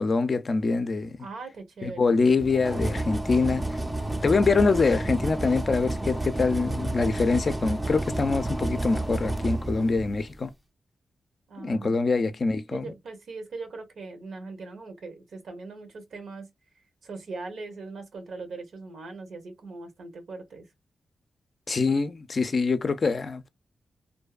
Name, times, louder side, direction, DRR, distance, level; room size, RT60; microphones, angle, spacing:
voice 1, 0.0-1.2 1.8-3.6 4.2-10.5 11.6-12.9 21.7-23.5, left 4 dB, 45° left, 0.4 m, -24 dB
voice 2, 1.2-2.2 11.5-16.5 17.0-20.6, right 3 dB, 80° right, 0.9 m, -40 dB
sound 1, 2.4-10.4, right 2 dB, 15° right, 0.5 m, -30 dB
2.6 x 2.2 x 2.3 m
cardioid pair, 80°, 0 cm